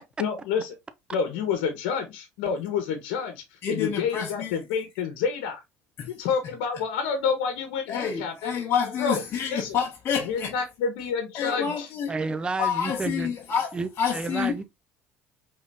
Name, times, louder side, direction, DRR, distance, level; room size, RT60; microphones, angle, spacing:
voice 1, 0.2-0.7 1.1-5.6 6.1-8.5 9.0-9.2 9.5-9.8 10.2-11.9, left 6 dB, 85° left, 1.1 m, -28 dB
voice 2, 3.6-4.6 6.0-6.1 7.9-10.5 11.3-12.2 12.6-13.7 14.0-14.6, left 7 dB, 45° left, 1.2 m, -28 dB
voice 3, 12.1-13.3 13.7-14.6, right 3 dB, 20° right, 0.6 m, -30 dB
5.1 x 3.7 x 2.6 m
supercardioid pair, 105°, 5 cm